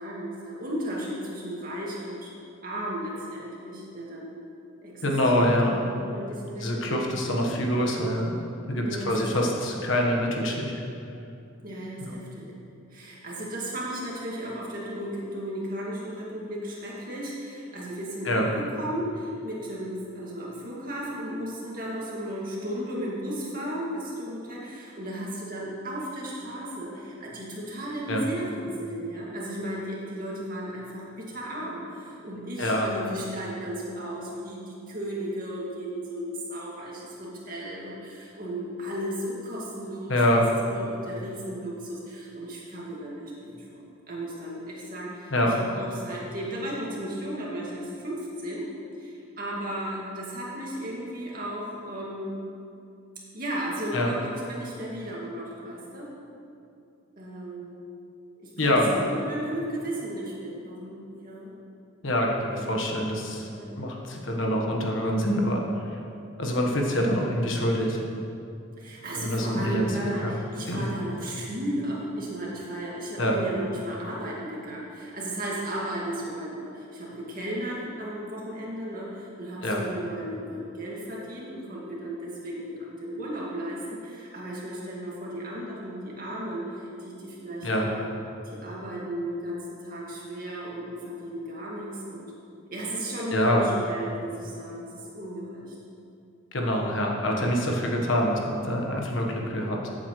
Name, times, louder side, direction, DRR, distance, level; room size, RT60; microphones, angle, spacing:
voice 1, 0.0-4.4 4.8-7.0 8.8-9.2 9.6-9.7 11.6-12.5 12.9-48.7 49.0-52.4 53.3-56.1 57.2-57.8 58.4-61.5 62.4-62.9 63.5-63.7 64.3-64.5 68.8-88.1 88.4-92.3 92.7-95.7 97.0-97.3, right 1 dB, 40° right, -5 dB, 2.2 m, -35 dB
voice 2, 5.0-5.8 6.6-8.4 8.7-10.7 12.0-12.1 18.2-18.5 28.1-28.2 32.6-32.9 40.1-40.5 45.3-45.5 53.9-54.1 58.6-58.9 62.0-63.5 63.8-65.6 66.4-68.0 69.1-69.9 70.2-70.3 70.7-70.9 73.2-73.4 79.6-79.8 87.6-87.9 93.3-93.7 96.5-99.8, equal, 65° left, 0 dB, 1.4 m, -25 dB
14.5 x 8.2 x 3.2 m, 2.6 s
head